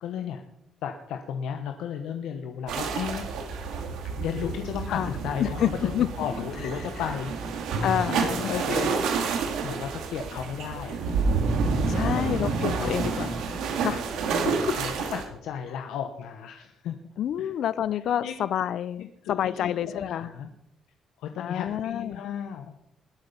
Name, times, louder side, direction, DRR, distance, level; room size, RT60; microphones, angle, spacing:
voice 1, 0.0-0.4 0.8-3.2 4.2-7.5 8.1-8.7 9.6-11.2 11.6-13.2 14.7-14.9 15.2-17.1 17.4-17.5 18.2-18.4 19.2-20.5 21.2-22.9, left 8 dB, 90° left, 5 dB, 1.1 m, -35 dB
sound 1, 2.7-15.2, right 4 dB, 85° right, 2.5 m, -29 dB
voice 2, 5.4-6.1 6.6-6.9 7.8-8.9 11.9-13.4 13.8-14.1 14.4-14.8 17.2-20.3 21.4-22.2, left 10 dB, 70° left, 17 dB, 0.5 m, -29 dB
20.5 x 7.9 x 5.5 m, 0.80 s
cardioid pair, 90°, 0 cm